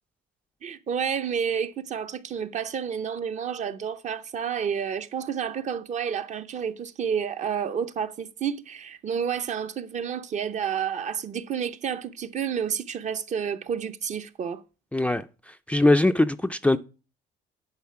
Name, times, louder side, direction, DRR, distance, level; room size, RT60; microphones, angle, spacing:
voice 1, 0.6-14.6, right 7 dB, 45° right, 0.7 m, -30 dB
voice 2, 14.9-16.8, left 2 dB, 5° left, 0.4 m, -22 dB
10.5 x 4.3 x 5.8 m
cardioid pair, 110°, 17 cm